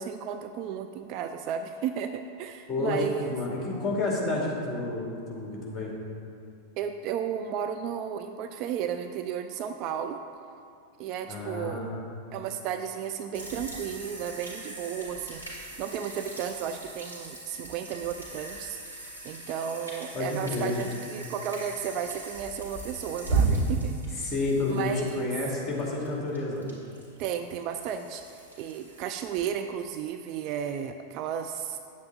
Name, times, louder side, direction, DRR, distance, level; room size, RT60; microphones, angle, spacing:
voice 1, 0.0-3.4 6.8-10.2 11.0-11.8 12.3-24.3 24.7-25.3 27.2-31.8, right 8 dB, 40° right, 7 dB, 0.4 m, -34 dB
voice 2, 2.7-5.0 5.3-5.9 11.3-11.9 20.1-20.8 24.2-26.6, left 2 dB, 15° left, -3 dB, 2.4 m, -30 dB
sound 1, 13.3-29.4, right 3 dB, 90° right, 2.2 m, -35 dB
9.2 x 7.8 x 4.0 m, 2.4 s
figure-of-eight pair, 90°, 0 cm